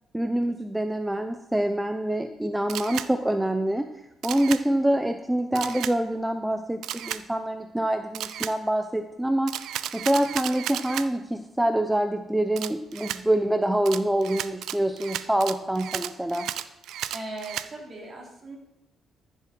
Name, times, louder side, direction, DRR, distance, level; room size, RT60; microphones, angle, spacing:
voice 1, 0.1-3.9 4.2-9.5 9.9-16.5, right 1 dB, 5° right, 7 dB, 0.7 m, -26 dB
Camera, 2.7-3.1 4.2-4.6 5.6-5.9 6.8-7.2 8.1-8.5 9.5-11.1 12.6-13.2 13.9-17.7, right 11 dB, 85° right, 0.5 m, -33 dB
voice 2, 17.1-18.6, right 2 dB, 40° right, -1 dB, 3.5 m, -38 dB
14.0 x 7.3 x 4.6 m, 0.95 s
cardioid pair, 90°, 0 cm